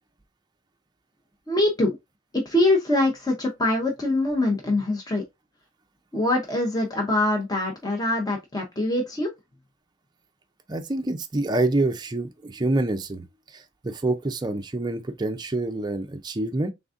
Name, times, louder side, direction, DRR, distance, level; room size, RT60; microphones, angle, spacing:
voice 1, 1.5-2.0 2.3-5.2 6.1-9.3, left 1 dB, 20° left, 0.7 m, -23 dB
voice 2, 10.7-13.2 13.5-16.7, right 2 dB, 20° right, 0.5 m, -26 dB
3.8 x 3.5 x 2.5 m
head